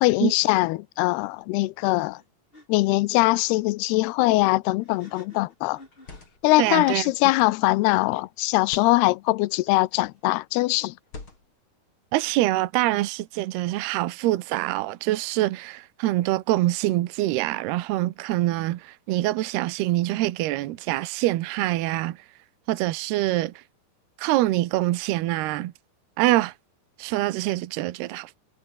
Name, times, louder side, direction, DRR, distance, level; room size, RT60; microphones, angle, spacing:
voice 1, 0.0-2.2 2.7-5.8 6.4-10.9, left 20 dB, 80° left, 2.6 m, -22 dB
sound 1, 2.1-2.3 2.5-2.7 4.8-7.0, left 1 dB, 15° left, 5.3 m, -49 dB
sound 2, 4.7-5.0 5.8-6.6 7.4-7.7 8.6-9.0 9.9-10.3 11.0-11.7, left 3 dB, 30° left, 5.5 m, -45 dB
voice 2, 6.6-7.1 12.1-22.2 22.7-23.5 24.2-25.7 26.2-26.5 27.0-28.4, right 16 dB, 75° right, 3.0 m, -25 dB
omnidirectional pair, 4.8 m